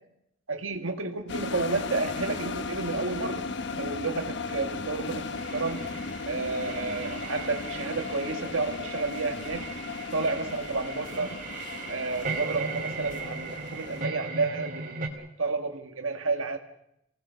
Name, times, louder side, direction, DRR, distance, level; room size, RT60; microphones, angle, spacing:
voice 1, 0.5-3.4 3.8-5.9 6.2-9.7 10.1-11.4 11.9-16.6, right 3 dB, 80° right, 4 dB, 1.6 m, -31 dB
sound 1, 1.3-14.1, left 4 dB, 60° left, 1.2 m, -36 dB
sound 2, 5.3-15.1, right 4 dB, 40° right, 2.8 m, -38 dB
27.5 x 18.0 x 6.8 m, 0.80 s
head